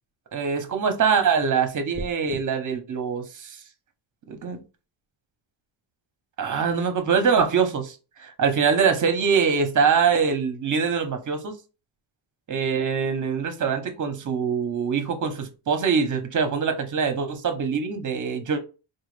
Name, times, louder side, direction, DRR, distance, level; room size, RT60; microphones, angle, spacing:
voice 1, 0.3-3.6 4.3-4.6 6.4-11.6 12.5-18.6, right 6 dB, 40° right, 0.7 m, -23 dB
sound 1, 1.9-2.4, left 1 dB, 15° left, 0.3 m, -36 dB
4.1 x 2.3 x 3.2 m
wide cardioid pair, 140°, 50 cm